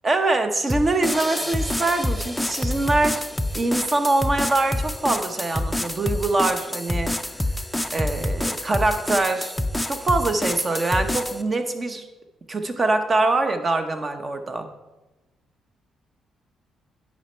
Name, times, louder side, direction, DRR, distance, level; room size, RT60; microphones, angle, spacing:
voice 1, 0.0-3.2 3.5-7.1 7.9-9.5 9.9-12.1 12.5-14.7, right 2 dB, 30° right, 7 dB, 0.9 m, -23 dB
sound 1, 0.7-11.4, left 1 dB, 5° left, 0.5 m, -27 dB
9.7 x 5.3 x 4.5 m, 1.1 s
cardioid pair, 90°, 0 cm